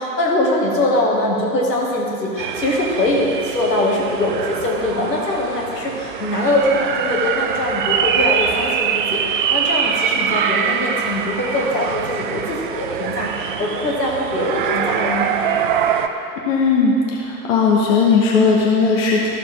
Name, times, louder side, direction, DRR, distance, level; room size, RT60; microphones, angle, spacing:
voice 1, 0.0-15.3, left 1 dB, 75° left, -3 dB, 2.1 m, -22 dB
sound 1, 2.4-16.1, right 7 dB, 35° right, 0.4 m, -23 dB
voice 2, 16.4-16.9 17.2-19.3, left 5 dB, 50° left, -3 dB, 1.4 m, -16 dB
13.5 x 6.6 x 3.6 m, 2.8 s
figure-of-eight pair, 95°, 49 cm